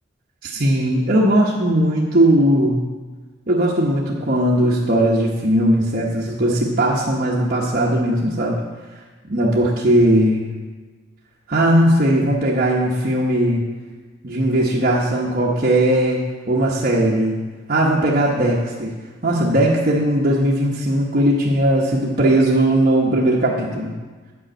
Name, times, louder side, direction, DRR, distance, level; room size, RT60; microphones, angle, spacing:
voice 1, 0.4-2.8 3.5-8.6 9.3-10.4 11.5-13.6 14.2-16.2 16.5-17.4 17.7-18.9 19.2-23.9, right 1 dB, 45° right, -5 dB, 1.1 m, -18 dB
9.6 x 5.2 x 7.7 m, 1.3 s
head